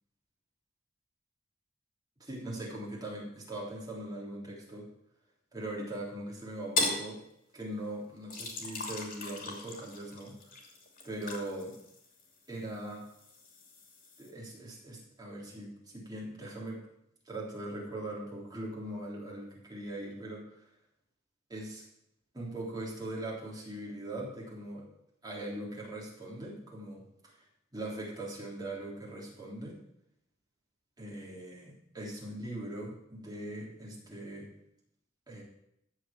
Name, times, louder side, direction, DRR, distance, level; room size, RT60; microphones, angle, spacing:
voice 1, 2.2-4.9 5.5-7.2 7.5-10.6 11.0-11.8 12.5-13.1 14.2-16.8 17.2-20.7 21.5-21.8 22.3-24.9 25.2-27.5 27.7-29.8 31.0-34.5 35.3-35.4, right 1 dB, 20° right, -4 dB, 3.3 m, -41 dB
sound 1, 6.8-7.1 8.3-12.6 12.9-14.3, left 3 dB, 45° left, 2.7 m, -37 dB
14.5 x 4.9 x 7.6 m, 0.79 s
head